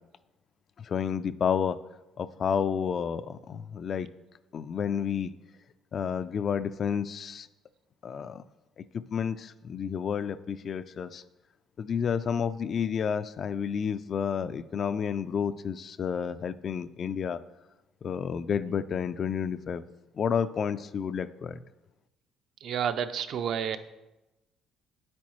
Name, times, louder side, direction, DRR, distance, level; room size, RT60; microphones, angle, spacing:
voice 1, 0.8-1.8 2.2-4.1 4.5-5.3 5.9-7.5 8.0-8.4 8.8-11.2 11.8-17.4 18.0-19.8 20.1-21.6, left 7 dB, 40° left, 13 dB, 0.3 m, -30 dB
voice 2, 22.6-23.8, right 8 dB, 55° right, 10 dB, 0.5 m, -30 dB
9.3 x 8.4 x 3.1 m, 1.0 s
cardioid pair, 140°, 0 cm